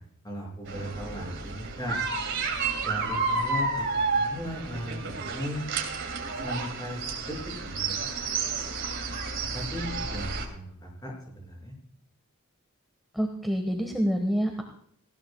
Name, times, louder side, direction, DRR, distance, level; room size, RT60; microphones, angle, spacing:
voice 1, 0.2-2.0 2.8-5.7 6.4-8.1 9.4-11.7, equal, 20° left, -1 dB, 6.6 m, -37 dB
sound 1, 0.7-10.4, right 4 dB, 55° right, 2.8 m, -31 dB
voice 2, 13.1-14.6, equal, ahead, 2 dB, 1.4 m, -27 dB
19.5 x 17.0 x 2.3 m, 0.66 s
head